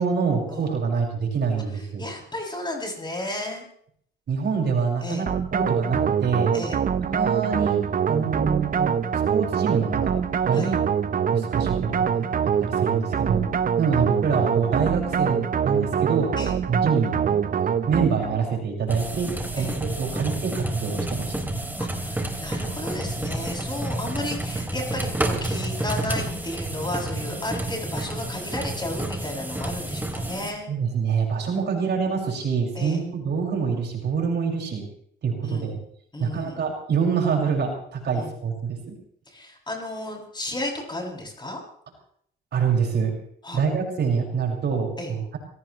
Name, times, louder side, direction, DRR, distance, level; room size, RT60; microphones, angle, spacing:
voice 1, 0.0-2.0 4.3-6.5 7.0-7.8 8.1-8.9 9.3-10.2 10.5-10.8 11.3-12.3 12.6-13.4 13.8-16.3 16.7-17.4 17.9-21.3 30.7-34.8 35.2-35.8 36.2-39.0 42.5-43.1 43.5-45.4, right 6 dB, 60° right, 0 dB, 6.0 m, -25 dB
voice 2, 2.0-3.6 5.0-5.2 6.5-6.8 10.5-10.7 16.4-16.6 19.6-19.8 21.8-30.7 32.7-33.0 35.4-35.8 36.1-36.6 38.1-38.3 39.3-41.6 43.4-43.6 45.0-45.1, left 1 dB, 20° left, -1 dB, 7.4 m, -33 dB
sound 1, 5.3-18.4, right 7 dB, 45° right, 0.9 m, -24 dB
sound 2, 18.9-30.5, right 1 dB, 10° right, 3.2 m, -30 dB
26.0 x 17.5 x 3.2 m, 0.65 s
cardioid pair, 90°, 20 cm